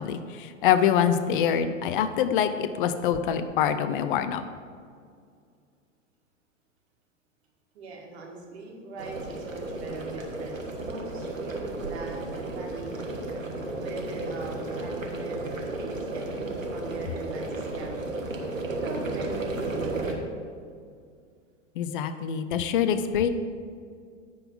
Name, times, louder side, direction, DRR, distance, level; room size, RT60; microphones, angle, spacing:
voice 1, 0.0-4.4 21.8-23.3, left 8 dB, 45° left, 10 dB, 0.5 m, -25 dB
voice 2, 7.7-12.9 13.8-18.1 18.7-20.3, right 3 dB, 55° right, -1 dB, 1.8 m, -40 dB
sound 1, 9.0-20.1, right 2 dB, 85° right, 1.2 m, -33 dB
9.8 x 4.0 x 5.3 m, 2.2 s
figure-of-eight pair, 95°, 39 cm